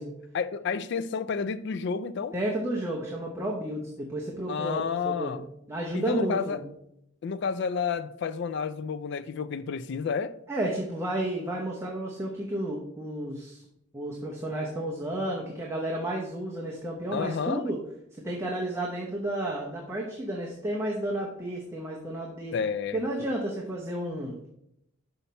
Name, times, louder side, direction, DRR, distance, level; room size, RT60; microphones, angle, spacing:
voice 1, 0.3-2.3 4.5-5.4 5.9-6.6 7.2-10.4 17.1-17.6 22.5-23.0, left 6 dB, 55° left, 0.3 m, -30 dB
voice 2, 2.3-6.7 10.5-13.6 13.9-17.8 18.1-22.6 22.9-24.5, right 1 dB, 15° right, 0.8 m, -32 dB
5.7 x 5.6 x 4.1 m
head